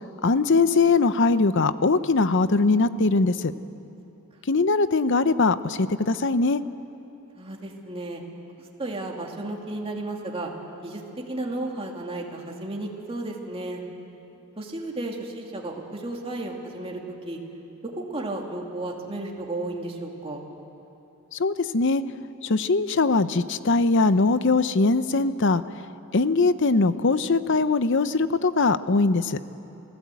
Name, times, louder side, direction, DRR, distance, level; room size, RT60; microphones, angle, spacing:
voice 1, 0.2-3.5 4.5-6.6 21.3-22.0 22.4-25.6 26.1-29.4, left 3 dB, 55° left, 13 dB, 0.7 m, -21 dB
voice 2, 7.3-8.2 8.8-10.5 10.8-11.0 11.3-13.8 14.6-17.0 17.2-17.4 17.8-20.4, right 2 dB, 25° right, 0 dB, 2.5 m, -33 dB
28.0 x 16.0 x 8.4 m, 2.9 s
head